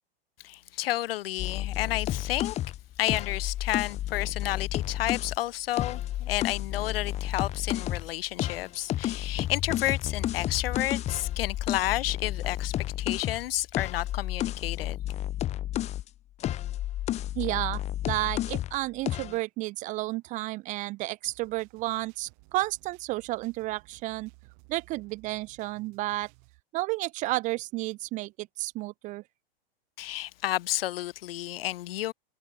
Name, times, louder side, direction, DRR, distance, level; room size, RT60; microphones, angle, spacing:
voice 1, 0.4-2.6 3.0-15.0 30.0-32.1, left 15 dB, 65° left, 0.8 m, -31 dB
sound 1, 1.4-5.4 5.7-8.1 8.4-16.1 16.4-18.8 19.1-19.4, left 13 dB, 20° left, 0.6 m, -31 dB
voice 2, 17.4-24.3 24.7-26.3 26.7-29.2, right 19 dB, 25° right, 0.4 m, -32 dB
sound 2, 21.3-26.6, right 40 dB or more, 50° right, 5.7 m, -57 dB
hypercardioid pair, 120°, 31 cm